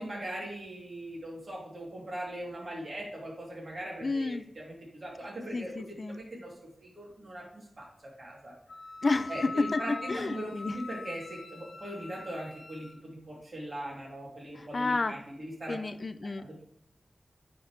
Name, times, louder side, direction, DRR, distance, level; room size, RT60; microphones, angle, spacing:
voice 1, 0.0-6.5 6.8-7.8 8.2-8.5 9.3-15.8 16.4-16.6, right 1 dB, 50° right, -4 dB, 2.8 m, -40 dB
voice 2, 4.0-4.4 5.5-6.2 9.0-10.8 14.6-15.1 15.7-16.4, left 3 dB, 45° left, 12 dB, 0.3 m, -31 dB
Wind instrument woodwind instrument, 8.7-13.0, left 4 dB, 80° left, 0.9 m, -42 dB
9.2 x 4.3 x 3.1 m, 0.69 s
wide cardioid pair, 105°, 0 cm